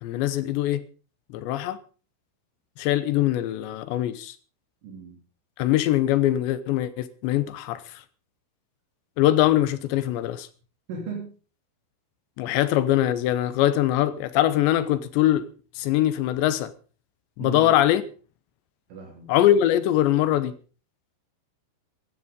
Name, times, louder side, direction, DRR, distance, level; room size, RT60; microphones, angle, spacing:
voice 1, 0.0-0.8 1.3-1.8 2.8-4.4 5.6-8.0 9.2-10.5 12.4-15.4 15.8-16.7 17.4-18.0 19.3-20.5, left 13 dB, 75° left, 2.9 m, -22 dB
voice 2, 4.8-5.2 10.9-11.3 17.4-17.7 18.9-19.3, right 4 dB, 75° right, 5.8 m, -36 dB
15.5 x 12.5 x 5.3 m
omnidirectional pair, 5.7 m